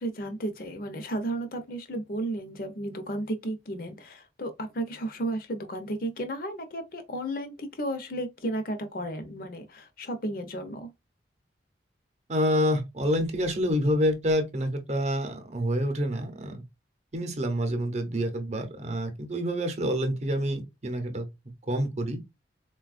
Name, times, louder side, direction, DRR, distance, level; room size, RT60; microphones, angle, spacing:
voice 1, 0.0-10.9, right 1 dB, 50° left, 0.7 m, -33 dB
voice 2, 12.3-16.6 17.1-21.3 21.7-22.2, equal, 40° right, 0.7 m, -27 dB
3.9 x 2.3 x 2.4 m
head